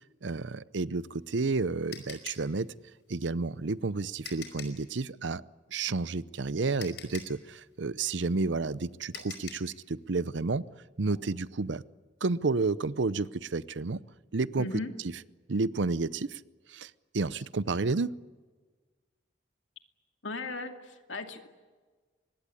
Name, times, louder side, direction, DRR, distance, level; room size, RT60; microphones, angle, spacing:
voice 1, 0.2-2.7 3.1-5.4 5.7-10.6 11.0-11.8 12.2-14.0 14.3-14.7 15.5-16.4 16.7-18.1, right 3 dB, 75° right, 18 dB, 0.7 m, -31 dB
sound 1, 1.0-4.9 6.3-6.4 6.8-9.8, left 7 dB, 65° left, 5.1 m, -45 dB
voice 2, 14.6-14.9 20.2-21.5, left 3 dB, 90° left, 6 dB, 2.4 m, -37 dB
24.5 x 20.5 x 9.9 m, 1.4 s
head